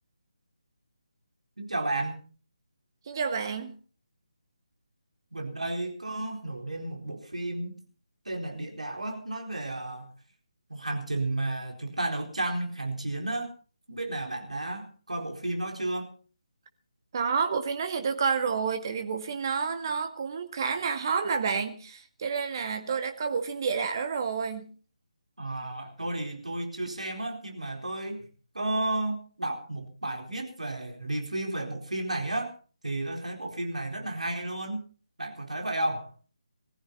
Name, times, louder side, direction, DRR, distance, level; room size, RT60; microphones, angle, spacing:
voice 1, 1.6-2.2 5.3-7.8 8.3-10.1 10.7-13.5 13.9-16.1 25.4-28.3 28.5-32.5 32.8-34.8 35.2-36.1, right 2 dB, 70° right, 3 dB, 4.2 m, -32 dB
voice 2, 3.1-3.7 17.1-24.7, right 5 dB, 35° right, 6 dB, 2.0 m, -29 dB
21.0 x 15.0 x 4.2 m, 0.40 s
figure-of-eight pair, 150°, 4 cm